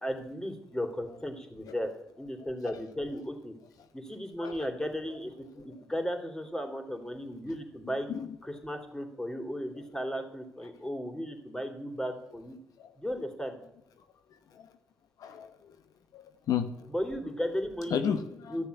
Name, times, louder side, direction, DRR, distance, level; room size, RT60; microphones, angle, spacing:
voice 1, 0.0-1.9 2.2-3.5 3.9-8.1 8.4-12.6 13.0-13.6 16.9-18.1 18.5-18.7, equal, 10° left, 3.4 m, -35 dB
voice 2, 15.2-15.7 16.1-16.7 17.9-18.6, left 8 dB, 70° left, 1.0 m, -33 dB
14.0 x 6.6 x 9.7 m
hypercardioid pair, 45°, 6 cm